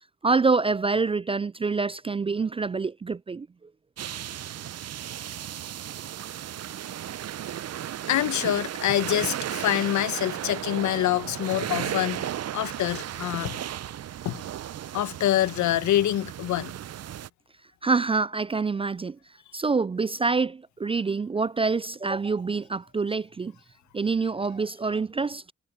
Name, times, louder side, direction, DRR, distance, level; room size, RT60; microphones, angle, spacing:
voice 1, 0.2-3.5 17.8-19.2 19.5-23.5 23.9-25.5, right 4 dB, 20° right, 0.3 m, -26 dB
sound 1, 4.0-17.3, right 11 dB, 55° right, 0.7 m, -35 dB
voice 2, 8.1-13.6 14.2-14.4 14.9-16.7, left 13 dB, 75° left, 1.1 m, -26 dB
hypercardioid pair, 40°, 30 cm